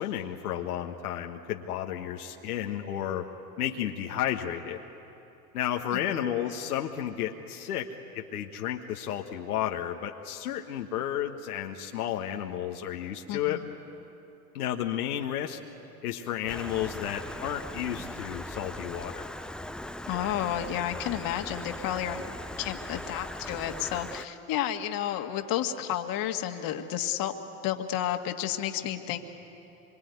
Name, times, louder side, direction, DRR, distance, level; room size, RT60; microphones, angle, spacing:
voice 1, 0.0-3.3 3.6-4.8 5.5-7.9 8.1-13.6 14.5-15.6 16.0-19.3, left 10 dB, 80° left, 2 dB, 1.5 m, -32 dB
voice 2, 5.9-6.2 13.3-13.7 20.1-27.4 27.6-29.2, left 11 dB, 50° left, 5 dB, 2.0 m, -31 dB
Stream, 16.5-24.3, left 1 dB, ahead, 0.6 m, -39 dB
25.5 x 24.5 x 9.5 m, 2.8 s
hypercardioid pair, 90°, 44 cm